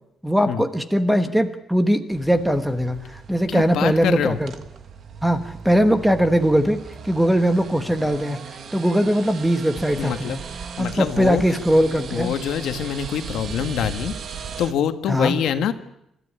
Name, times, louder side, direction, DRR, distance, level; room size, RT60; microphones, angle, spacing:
voice 1, 0.2-4.5 5.2-8.4 8.7-10.4 10.8-12.3 15.1-15.4, equal, 5° right, 9 dB, 1.3 m, -20 dB
sound 1, 2.1-14.7, right 6 dB, 45° right, 1.5 m, -37 dB
voice 2, 3.5-4.4 10.0-10.4 10.8-11.4 12.1-14.1 14.6-15.7, left 9 dB, 75° left, 9 dB, 1.5 m, -25 dB
28.0 x 13.5 x 10.0 m, 0.81 s
cardioid pair, 175°, 0 cm